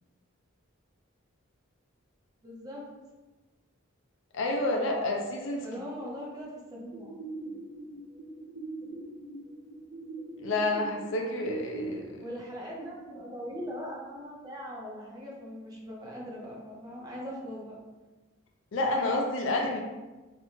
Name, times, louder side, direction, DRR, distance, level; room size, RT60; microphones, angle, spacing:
voice 1, 2.4-2.9 5.6-7.1 12.2-17.8, equal, 20° right, -3 dB, 0.4 m, -40 dB
voice 2, 4.3-5.7 10.4-12.2 18.7-19.8, left 2 dB, 65° left, 1 dB, 0.4 m, -29 dB
sound 1, 6.9-11.9, right 3 dB, 70° right, 0.8 m, -41 dB
2.5 x 2.1 x 3.0 m, 1.2 s
head